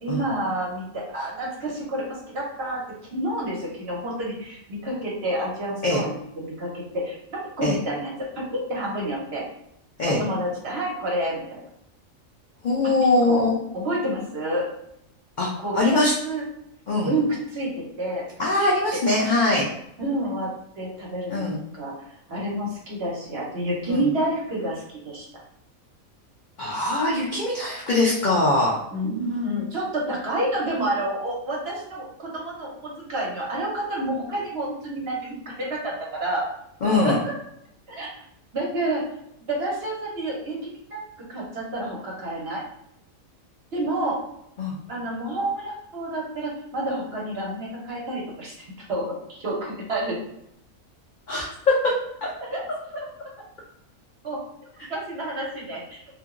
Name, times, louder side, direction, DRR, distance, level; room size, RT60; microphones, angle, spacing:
voice 1, 0.0-2.8 3.1-9.4 10.2-11.6 13.2-13.5 13.7-14.7 15.6-16.4 17.1-18.2 18.6-19.0 20.0-20.5 20.8-21.9 22.3-25.2 28.9-36.5 36.8-37.3 37.9-38.1 38.5-39.0 39.5-41.0 41.3-42.6 43.7-44.2 44.9-48.5 48.9-50.2 52.5-52.6 52.9-53.0 54.2-54.4 54.9-56.0, right 1 dB, 55° right, -3 dB, 0.9 m, -29 dB
voice 2, 12.6-13.6 15.4-16.1 16.9-17.1 18.4-19.6 21.3-21.6 23.9-24.1 26.6-28.8 36.8-37.2 44.6-44.7 51.3-51.9 52.2-52.3, left 2 dB, 85° left, -3 dB, 0.4 m, -22 dB
2.8 x 2.5 x 2.4 m, 0.77 s
omnidirectional pair, 1.4 m